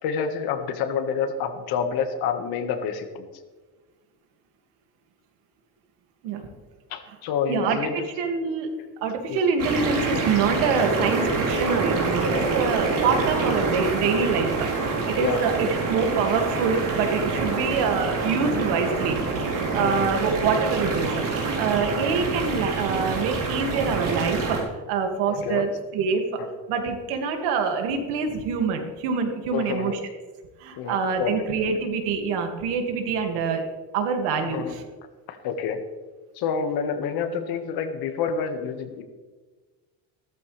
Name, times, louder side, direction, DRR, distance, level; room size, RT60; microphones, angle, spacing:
voice 1, 0.0-3.3 6.9-7.9 9.3-9.4 15.2-15.4 17.6-17.7 19.8-20.3 25.3-25.7 26.4-26.5 29.5-30.0 30.8-31.4 34.4-34.8 35.3-35.8 36.4-39.0, left 6 dB, 65° left, 6 dB, 1.8 m, -28 dB
voice 2, 8.2-8.7 9.0-19.2 19.4-21.2 21.6-26.4 26.7-30.0 30.6-33.7 33.9-34.8, right 5 dB, 85° right, 4 dB, 2.4 m, -25 dB
sound 1, 9.6-24.6, right 4 dB, 50° right, 4.2 m, -26 dB
16.0 x 13.5 x 3.4 m, 1.3 s
cardioid pair, 150°, 39 cm